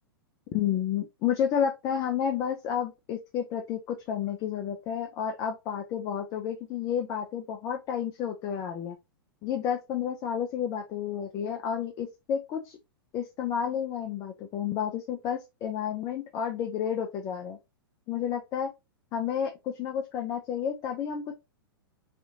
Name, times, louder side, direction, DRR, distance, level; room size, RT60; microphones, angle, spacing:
voice 1, 0.5-9.0 9.4-12.8 13.1-17.6 18.1-18.7 19.1-21.3, left 8 dB, 25° left, 2 dB, 0.4 m, -31 dB
2.7 x 2.4 x 2.5 m, 0.23 s
figure-of-eight pair, 105°, 13 cm